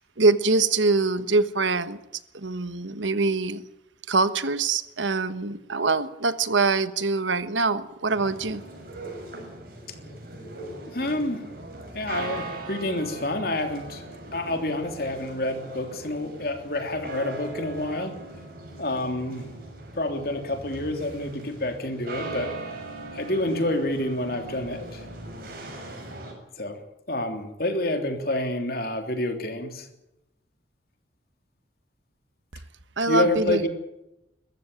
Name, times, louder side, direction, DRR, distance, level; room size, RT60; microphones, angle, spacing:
voice 1, 0.0-2.0 2.3-3.6 4.1-8.6 33.0-33.7, right 3 dB, 90° right, 12 dB, 1.3 m, -24 dB
sound 1, 8.1-26.3, right 2 dB, 50° right, 7.0 m, -40 dB
voice 2, 10.9-11.4 11.9-14.0 14.3-18.1 18.8-19.5 19.9-22.5 23.1-25.0 26.6-26.8 27.1-29.9 33.1-33.7, left 1 dB, 55° left, 5 dB, 3.3 m, -28 dB
22.5 x 14.5 x 9.2 m, 0.89 s
head